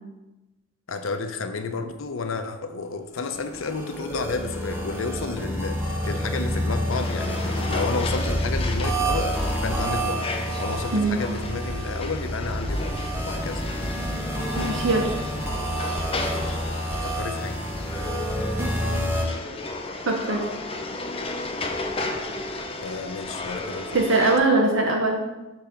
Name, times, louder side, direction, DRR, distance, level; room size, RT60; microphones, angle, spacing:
voice 1, 0.9-10.3 10.6-13.0 13.3-13.6 16.3-16.6 17.0-17.6 22.8-24.3, left 4 dB, 80° left, 8 dB, 0.6 m, -31 dB
sound 1, 3.3-19.2, equal, 10° right, 1.0 m, -28 dB
sound 2, 6.9-24.4, left 2 dB, 30° left, 0.6 m, -34 dB
voice 2, 10.9-11.2 14.6-15.1 20.1-20.4 23.9-25.2, right 2 dB, 70° right, 1 dB, 0.7 m, -21 dB
6.8 x 3.4 x 5.7 m, 1.1 s
head